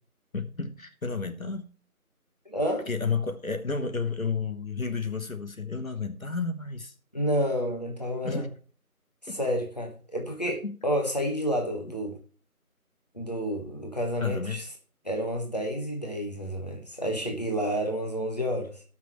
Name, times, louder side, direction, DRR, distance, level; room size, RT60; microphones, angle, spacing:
voice 1, 0.3-1.7 2.9-6.9 8.2-8.5 9.3-9.4 10.6-10.8 14.2-14.7, left 4 dB, 65° left, 1.3 m, -31 dB
voice 2, 2.5-2.9 7.1-8.4 9.2-12.2 13.1-14.7 15.0-18.8, equal, 30° left, 1.3 m, -30 dB
18.0 x 6.1 x 3.1 m
figure-of-eight pair, 175°, 45 cm